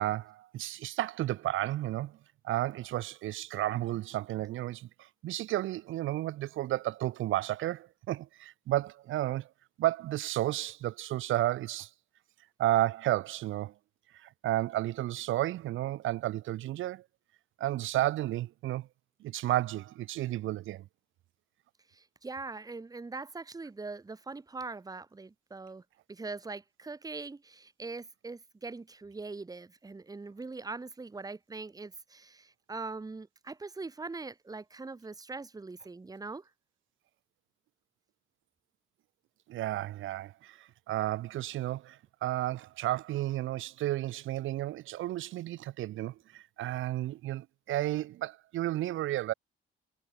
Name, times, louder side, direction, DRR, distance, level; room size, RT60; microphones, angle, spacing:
voice 1, 0.0-2.2 2.4-9.5 9.8-11.9 12.6-13.7 14.1-17.0 17.6-18.9 19.2-20.8 39.5-49.3, right 14 dB, 80° right, 1.3 m, -32 dB
voice 2, 21.9-25.8 26.1-36.4, right 3 dB, 20° right, 1.3 m, -42 dB
cardioid pair, 90°, 20 cm